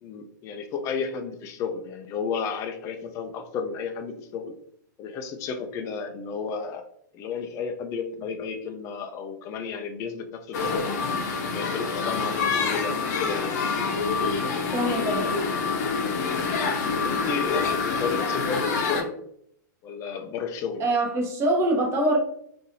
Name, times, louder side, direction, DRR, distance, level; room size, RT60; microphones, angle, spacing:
voice 1, 0.0-4.5 5.0-6.8 7.1-11.0 11.4-13.9 17.0-19.1 19.8-20.8, left 5 dB, 30° left, 5 dB, 0.4 m, -33 dB
sound 1, 10.5-19.0, left 4 dB, 55° left, 0.7 m, -26 dB
voice 2, 14.7-15.3 20.8-22.2, right 1 dB, 25° right, 0 dB, 1.0 m, -24 dB
3.9 x 2.7 x 2.6 m, 0.69 s
hypercardioid pair, 135°, 11 cm